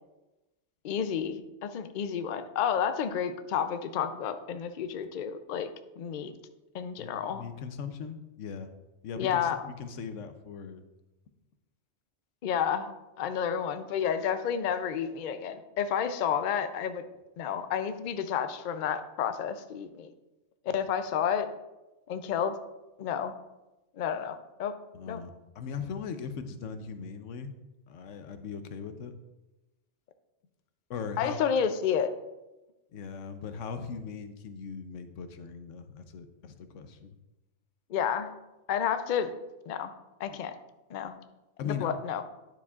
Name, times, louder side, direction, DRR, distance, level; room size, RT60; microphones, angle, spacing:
voice 1, 0.8-5.7 6.0-6.3 6.7-7.4 9.2-9.6 12.4-12.9 13.2-17.0 17.4-20.1 20.7-21.5 22.1-22.5 23.0-23.3 24.0-24.8 25.1-25.2 31.2-32.1 37.9-38.3 38.7-39.3 39.7-39.9 40.2-40.5 40.9-41.2 41.6-42.2, left 8 dB, 55° left, 9 dB, 0.6 m, -30 dB
voice 2, 7.0-8.7 9.0-10.8 24.9-27.5 27.9-29.1 30.9-31.4 32.9-37.1 41.6-41.9, left 6 dB, 90° left, 9 dB, 1.0 m, -39 dB
10.0 x 6.9 x 2.4 m, 1.0 s
omnidirectional pair, 1.2 m